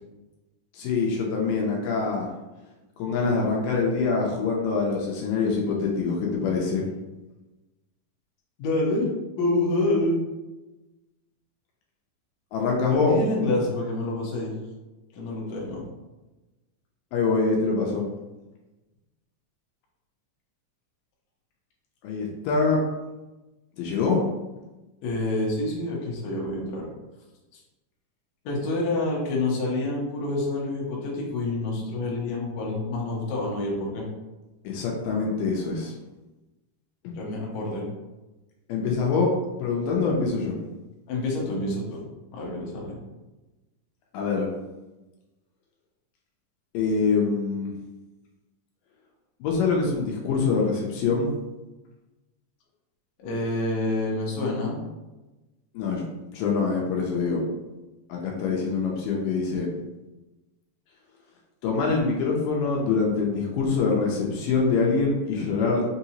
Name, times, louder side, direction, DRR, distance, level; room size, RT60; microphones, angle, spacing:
voice 1, 0.7-2.3 3.0-6.9 12.5-13.2 17.1-18.1 22.0-22.8 23.8-24.2 34.6-35.9 37.0-37.2 38.7-39.3 39.6-40.6 44.1-44.5 46.7-47.7 49.4-51.3 55.7-56.0 56.3-57.4 58.1-59.7 61.6-65.8, left 4 dB, 85° left, -1 dB, 2.3 m, -24 dB
voice 2, 8.6-9.1 9.4-10.2 12.9-14.5 15.1-15.8 25.0-26.9 28.5-34.1 37.2-37.9 41.1-42.0 42.3-43.0 53.2-54.8, left 2 dB, 65° left, -3 dB, 2.1 m, -27 dB
5.6 x 2.8 x 2.8 m, 1.1 s
omnidirectional pair, 3.8 m